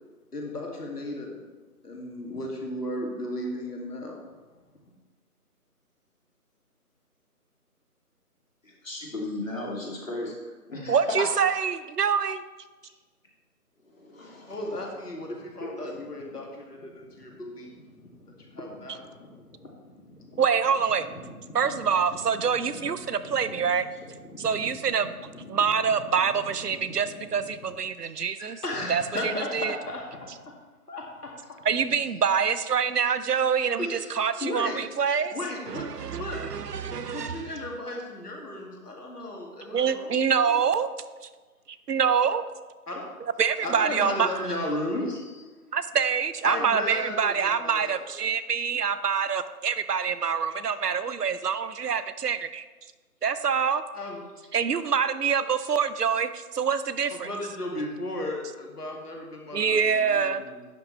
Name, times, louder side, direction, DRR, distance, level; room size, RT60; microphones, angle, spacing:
voice 1, 0.3-1.4 1.8-4.2 14.5-20.4 21.0-30.6 30.9-31.6 33.8-34.8 35.1-36.4 36.7-40.1 40.5-40.6 42.9-43.1 43.6-45.5 46.4-48.0 53.9-54.5 57.1-60.7, left 1 dB, 75° left, 0 dB, 2.2 m, -36 dB
voice 2, 8.6-10.3 10.7-11.3 13.9-14.5 15.7-15.9, left 2 dB, 55° left, -3 dB, 2.5 m, -35 dB
voice 3, 10.9-12.4 20.4-21.1 21.5-23.9 24.4-25.1 25.5-28.6 28.9-29.0 29.5-29.8 31.6-35.3 35.7-37.5 39.7-40.9 41.9-42.4 43.4-44.4 45.7-52.6 53.2-53.8 54.5-57.3 59.5-60.4, right 6 dB, 80° right, 13 dB, 0.7 m, -25 dB
10.5 x 6.1 x 3.3 m, 1.3 s
figure-of-eight pair, 180°, 47 cm